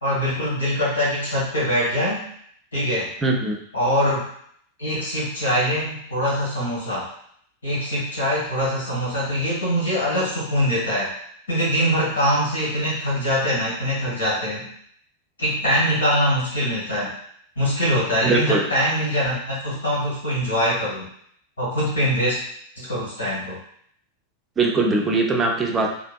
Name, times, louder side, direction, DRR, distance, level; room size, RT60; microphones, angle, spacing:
voice 1, 0.0-2.3 2.7-3.1 3.7-4.2 4.8-7.1 7.6-11.1 11.5-14.7 15.4-17.1 17.6-21.1 21.6-22.4 22.8-23.6, equal, 75° left, -7 dB, 1.4 m, -23 dB
voice 2, 3.2-3.6 18.2-18.6 24.6-25.9, right 3 dB, 20° right, 1 dB, 0.5 m, -21 dB
2.9 x 2.6 x 2.2 m, 0.66 s
figure-of-eight pair, 90°, 0 cm